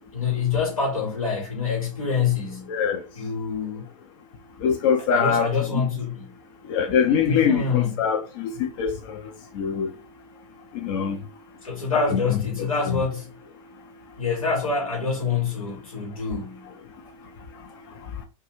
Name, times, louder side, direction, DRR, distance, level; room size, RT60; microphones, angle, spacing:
voice 1, 0.1-2.7 3.1-3.8 5.0-6.3 7.2-8.0 11.6-13.3 14.2-16.7, left 5 dB, 85° left, 1.2 m, -26 dB
voice 2, 2.7-3.0 4.6-5.5 5.7-5.9 6.7-8.9 9.6-9.9 10.8-11.2 12.1-12.2 12.9-13.0, left 7 dB, 45° left, 0.5 m, -23 dB
2.3 x 2.3 x 3.0 m
figure-of-eight pair, 100°, 17 cm